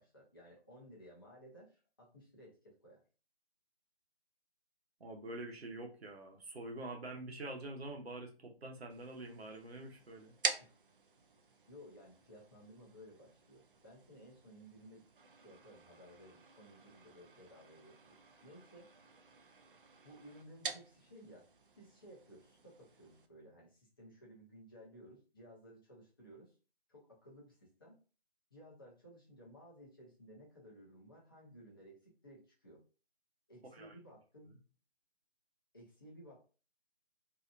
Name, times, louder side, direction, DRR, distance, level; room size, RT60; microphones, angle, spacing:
voice 1, 0.0-3.0 10.6-10.8 11.7-15.1 15.3-18.9 20.0-21.5 21.8-26.6 26.9-28.0 28.5-32.8 33.5-34.5 35.7-36.4, equal, 20° left, -5 dB, 0.7 m, -57 dB
voice 2, 5.0-10.3 33.7-33.9, right 2 dB, 70° right, 2 dB, 0.9 m, -46 dB
sound 1, 8.9-23.3, right 4 dB, 55° right, 0.4 m, -47 dB
2.7 x 2.2 x 2.5 m, 0.35 s
figure-of-eight pair, 160°, 32 cm